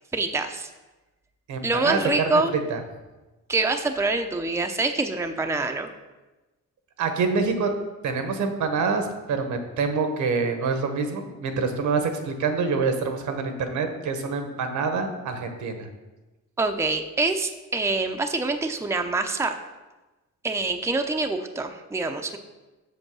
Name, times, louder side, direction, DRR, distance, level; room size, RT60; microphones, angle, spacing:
voice 1, 0.1-0.7 1.6-2.5 3.5-5.9 16.6-19.6 20.4-22.4, right 3 dB, 10° right, 5 dB, 0.6 m, -25 dB
voice 2, 1.5-2.4 2.7-2.8 7.0-7.7 8.0-15.9, right 4 dB, 75° right, 6 dB, 1.2 m, -26 dB
6.4 x 5.4 x 6.2 m, 1.1 s
cardioid pair, 90°, 30 cm